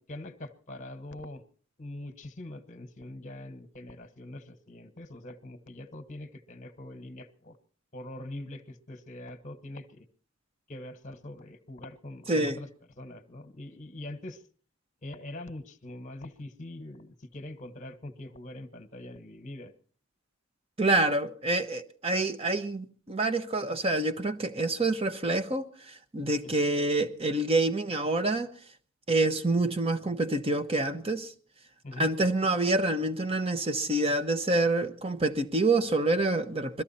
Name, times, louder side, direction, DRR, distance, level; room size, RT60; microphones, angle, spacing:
voice 1, 0.0-1.4 1.8-7.6 7.9-10.0 10.7-12.7 13.0-14.4 15.0-19.7 26.4-26.6 31.8-32.1, left 1 dB, 35° left, 1.3 m, -43 dB
voice 2, 12.3-12.6 20.8-28.5 29.1-31.3 32.0-36.8, right 2 dB, 30° right, 0.9 m, -27 dB
22.0 x 14.0 x 4.3 m
head